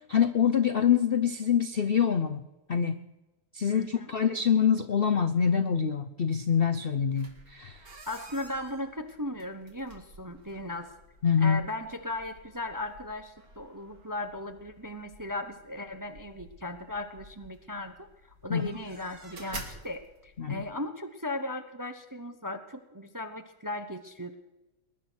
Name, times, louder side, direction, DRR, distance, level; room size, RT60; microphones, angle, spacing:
voice 1, 0.0-2.4 2.7-3.0 3.5-7.8 11.2-11.6 18.5-18.7 20.4-20.7, left 7 dB, 65° left, 9 dB, 0.5 m, -25 dB
voice 2, 3.7-4.1 8.1-10.9 11.4-18.1 18.4-24.3, left 1 dB, 20° right, 7 dB, 0.6 m, -37 dB
sound 1, 7.1-20.7, right 2 dB, 50° right, 2.5 m, -50 dB
21.0 x 11.0 x 6.2 m, 1.1 s
omnidirectional pair, 2.0 m